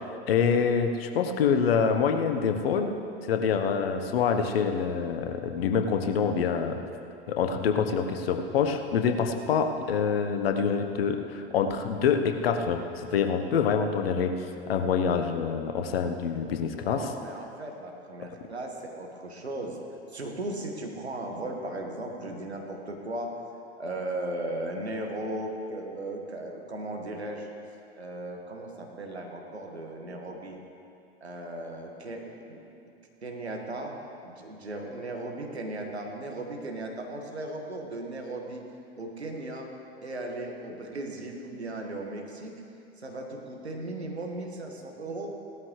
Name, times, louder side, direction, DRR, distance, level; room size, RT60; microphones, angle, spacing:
voice 1, 0.3-2.9 3.3-6.7 7.3-14.3 14.7-17.1, left 6 dB, 65° left, 6 dB, 1.2 m, -26 dB
voice 2, 16.8-19.8 20.1-23.4 23.8-27.5 28.0-30.6 31.2-32.6 33.2-34.0 34.2-38.6 39.0-39.7 40.0-42.5 43.0-45.3, right 1 dB, 85° right, 1 dB, 1.8 m, -36 dB
18.0 x 13.0 x 3.3 m, 2.6 s
figure-of-eight pair, 85°, 32 cm